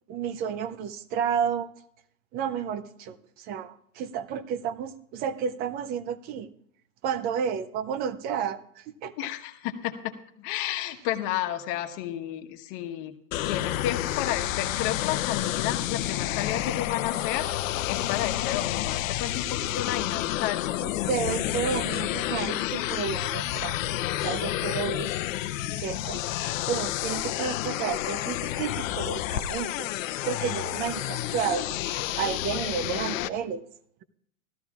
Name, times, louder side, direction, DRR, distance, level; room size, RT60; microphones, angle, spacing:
voice 1, 0.1-1.7 2.3-6.5 7.0-9.1 20.8-23.8 24.2-25.1 25.8-26.2 26.7-29.9 30.2-31.8 32.2-33.6, right 7 dB, 25° right, 15 dB, 0.4 m, -31 dB
voice 2, 9.2-13.1 13.4-21.3, left 12 dB, 45° left, 7 dB, 1.2 m, -32 dB
sound 1, 13.3-33.3, left 14 dB, 65° left, 0.8 m, -30 dB
18.0 x 13.5 x 2.4 m, 0.70 s
hypercardioid pair, 130°, 43 cm